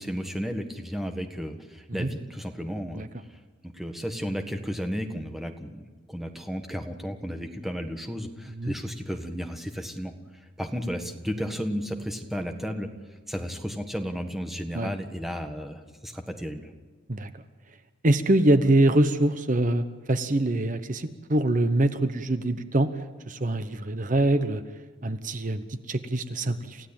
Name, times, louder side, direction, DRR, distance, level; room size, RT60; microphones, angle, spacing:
voice 1, 0.0-3.0 3.7-5.8 6.1-10.1 10.6-12.9 13.3-16.7, equal, ahead, 5 dB, 1.5 m, -33 dB
voice 2, 18.0-22.9 23.3-24.6 25.0-26.9, right 1 dB, 40° right, 10 dB, 0.9 m, -24 dB
28.5 x 15.5 x 8.8 m, 1.4 s
head